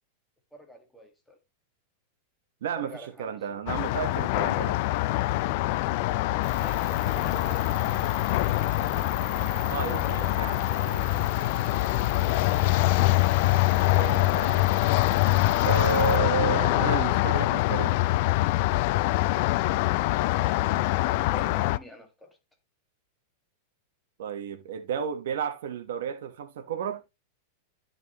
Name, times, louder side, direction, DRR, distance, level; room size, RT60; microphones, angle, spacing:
voice 1, 0.5-1.4 2.8-3.8 6.6-7.7 9.8-10.3 21.3-22.4, left 1 dB, ahead, 1.8 m, -47 dB
voice 2, 2.6-4.8 9.7-10.6 13.9-14.6 15.6-18.0 24.2-27.0, right 7 dB, 75° right, 1.1 m, -32 dB
sound 1, 3.7-21.8, left 18 dB, 50° left, 0.4 m, -24 dB
sound 2, 6.4-16.2, right 14 dB, 40° right, 0.8 m, -43 dB
11.5 x 5.3 x 3.0 m
supercardioid pair, 150°, 0 cm